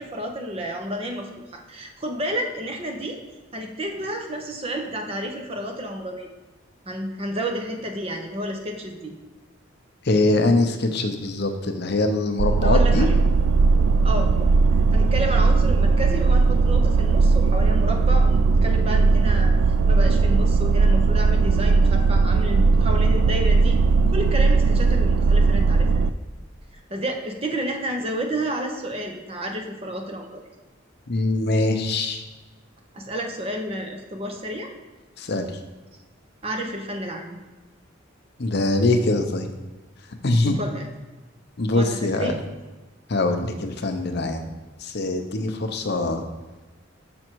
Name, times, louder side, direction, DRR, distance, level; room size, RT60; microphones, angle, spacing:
voice 1, 0.0-3.2 3.5-6.3 6.9-9.1 12.6-13.2 14.0-14.5 14.9-19.5 19.9-23.8 24.1-26.0 26.9-30.4 32.9-34.7 36.4-37.4 40.4-40.9 41.7-42.4, right 1 dB, 30° right, 3 dB, 0.9 m, -30 dB
voice 2, 10.0-13.1 31.1-32.2 35.2-35.5 38.4-39.5 40.2-40.6 41.6-42.3 43.1-44.4 44.8-46.2, left 2 dB, 55° left, 6 dB, 0.7 m, -23 dB
sound 1, 12.4-26.1, right 4 dB, 75° right, 0.3 m, -18 dB
6.2 x 6.0 x 4.6 m, 1.2 s
head